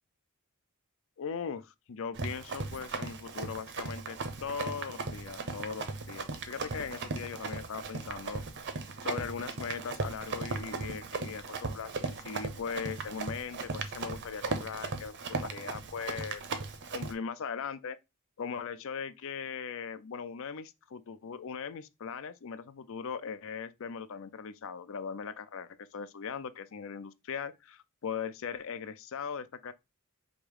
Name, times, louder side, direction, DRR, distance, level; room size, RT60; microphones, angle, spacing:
voice 1, 1.2-8.4 9.0-16.4 16.9-18.0 18.4-29.7, left 6 dB, 65° left, 0.5 m, -39 dB
Run, 2.1-17.1, right 4 dB, 55° right, 0.6 m, -37 dB
5.1 x 2.0 x 4.7 m
head